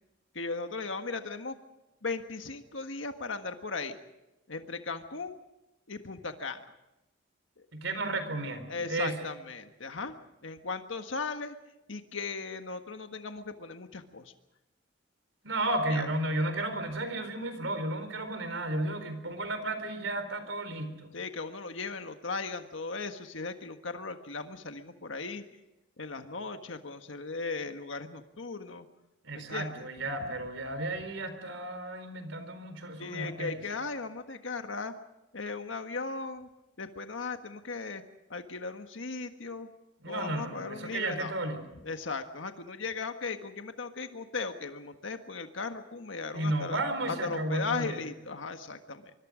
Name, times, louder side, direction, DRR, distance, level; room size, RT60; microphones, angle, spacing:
voice 1, 0.3-1.6 2.0-4.0 4.5-5.4 5.9-6.7 8.7-10.2 10.4-11.5 11.9-14.3 15.9-16.0 21.1-25.4 26.0-28.9 29.3-30.4 33.0-34.9 35.3-36.5 36.8-38.0 38.3-39.7 40.0-41.3 41.8-46.8 47.1-49.1, left 4 dB, 80° left, 7 dB, 1.6 m, -37 dB
voice 2, 7.7-9.2 15.4-21.1 29.2-33.6 40.0-41.6 46.3-48.0, right 2 dB, 80° right, 9 dB, 4.3 m, -33 dB
25.0 x 24.0 x 5.1 m, 0.94 s
head